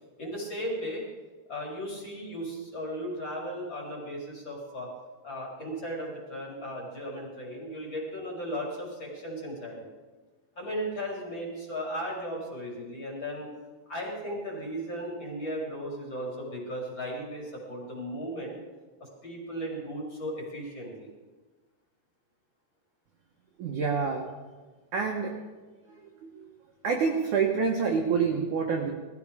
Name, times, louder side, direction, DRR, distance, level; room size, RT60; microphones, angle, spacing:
voice 1, 0.2-1.1 1.5-4.9 5.2-9.8 10.6-13.5 13.9-18.5 19.2-21.1, equal, 25° left, -3 dB, 3.7 m, -36 dB
voice 2, 23.6-24.3 24.9-25.3 25.9-26.5 26.8-28.9, right 5 dB, 75° right, 1 dB, 1.7 m, -27 dB
20.5 x 14.0 x 5.0 m, 1.3 s
omnidirectional pair, 5.5 m